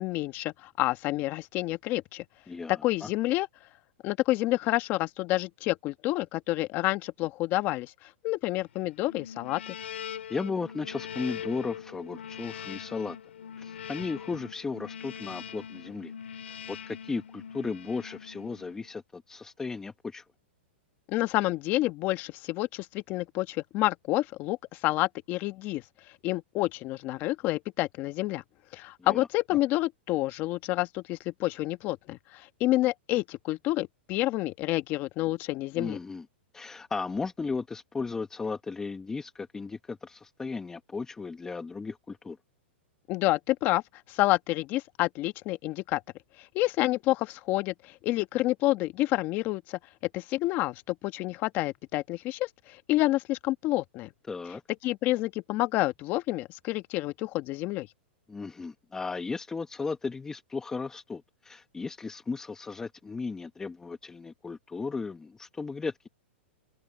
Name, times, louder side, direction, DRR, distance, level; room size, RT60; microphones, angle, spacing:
voice 1, 0.0-2.2 2.7-3.5 4.0-9.8 21.1-24.6 24.8-25.8 26.2-28.4 28.7-36.0 43.1-43.8 44.1-46.0 46.4-49.8 50.1-54.1 54.8-57.9, left 17 dB, 30° left, 1.2 m, -29 dB
voice 2, 2.5-3.1 10.3-13.2 13.6-16.1 16.4-20.2 29.0-29.3 35.7-36.2 36.5-42.4 54.3-54.6 58.3-66.1, left 4 dB, 10° left, 1.2 m, -35 dB
sound 1, 9.0-18.9, left 8 dB, 85° left, 5.1 m, -42 dB
open air
hypercardioid pair, 150°, 6 cm